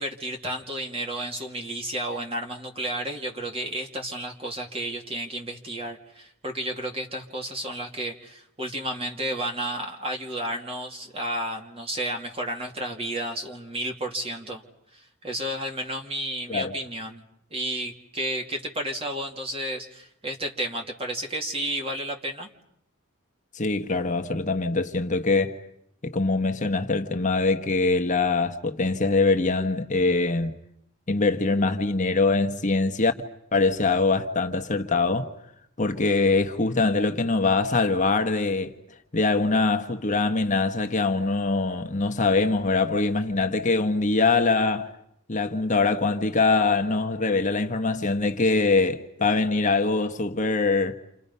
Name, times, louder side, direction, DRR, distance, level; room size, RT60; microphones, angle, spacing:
voice 1, 0.0-14.6 14.9-17.2 17.5-22.5, right 1 dB, 30° right, 2.6 m, -32 dB
voice 2, 23.5-25.6 26.0-30.5 31.1-33.1 33.5-35.3 35.8-38.7 39.1-44.9 45.3-51.0, left 3 dB, 35° left, 1.2 m, -23 dB
30.0 x 28.0 x 5.6 m
head